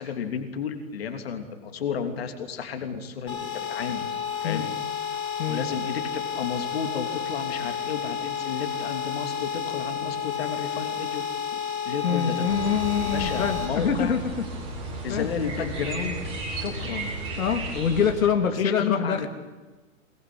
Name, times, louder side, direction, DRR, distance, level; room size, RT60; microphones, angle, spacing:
voice 1, 0.0-4.1 4.4-4.7 5.5-11.2 11.5-12.5 13.0-14.2 15.0-16.2 16.6-17.1 18.4-19.3, left 7 dB, 45° left, 6 dB, 3.1 m, -32 dB
sound 1, 3.3-13.7, left 8 dB, 10° left, 5.0 m, -31 dB
voice 2, 12.0-14.2 15.1-15.3 17.4-19.3, left 7 dB, 80° left, 6 dB, 2.9 m, -25 dB
sound 2, 12.5-18.1, right 2 dB, 15° right, 5.7 m, -34 dB
22.5 x 22.5 x 8.7 m, 1.2 s
hypercardioid pair, 175°, 40 cm